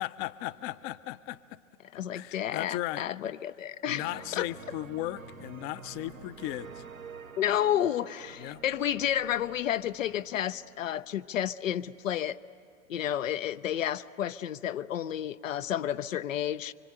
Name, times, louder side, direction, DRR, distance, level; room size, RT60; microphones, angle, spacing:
voice 1, 0.0-1.6 2.1-3.1 3.9-6.8 8.4-8.6, left 16 dB, 35° left, 15 dB, 0.6 m, -36 dB
voice 2, 1.9-4.5 7.4-12.4 12.9-16.7, left 10 dB, 75° left, 11 dB, 0.6 m, -31 dB
sound 1, 3.9-11.6, right 6 dB, 90° right, 1.3 m, -48 dB
25.5 x 24.0 x 9.0 m, 2.3 s
figure-of-eight pair, 90°, 40 cm